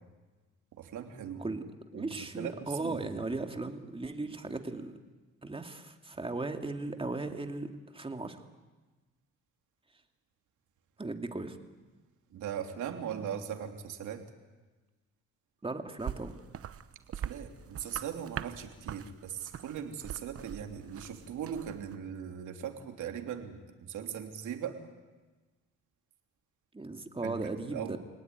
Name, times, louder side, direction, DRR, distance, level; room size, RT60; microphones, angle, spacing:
voice 1, 0.7-1.5 1.9-3.3 12.3-14.3 17.1-24.8 27.2-28.0, right 8 dB, 75° right, 4 dB, 3.1 m, -39 dB
voice 2, 1.9-5.0 5.4-8.4 11.0-11.6 15.6-16.3 26.7-28.0, right 3 dB, 20° right, 5 dB, 2.5 m, -37 dB
sound 1, 16.0-22.0, right 9 dB, 50° right, 1.0 m, -43 dB
27.0 x 18.5 x 9.6 m, 1.3 s
cardioid pair, 90°, 30 cm